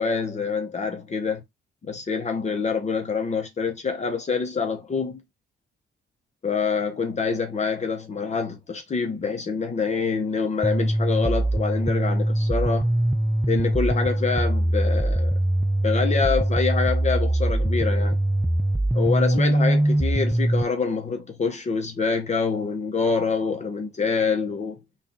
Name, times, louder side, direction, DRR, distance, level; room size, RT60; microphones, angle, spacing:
voice 1, 0.0-1.4 1.8-5.2 6.4-12.9 13.5-15.4 15.8-18.2 18.9-24.8, left 5 dB, 35° left, 0.8 m, -26 dB
sound 1, 10.6-20.6, right 1 dB, 5° right, 0.3 m, -22 dB
3.6 x 2.4 x 3.8 m
cardioid pair, 90°, 20 cm